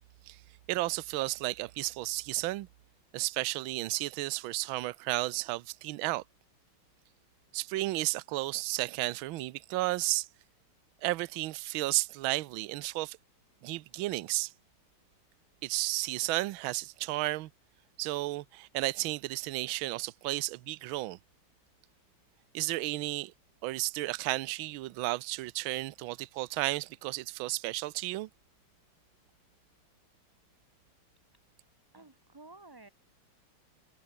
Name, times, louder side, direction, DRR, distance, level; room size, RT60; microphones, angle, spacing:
voice 1, 0.7-2.7 3.1-6.2 7.5-10.3 11.0-13.2 13.6-14.5 15.6-17.5 18.0-21.2 22.5-23.3 23.6-28.3, right 19 dB, 75° right, 1.4 m, -33 dB
voice 2, 31.9-32.9, right 2 dB, 20° right, 0.5 m, -52 dB
omnidirectional pair, 2.4 m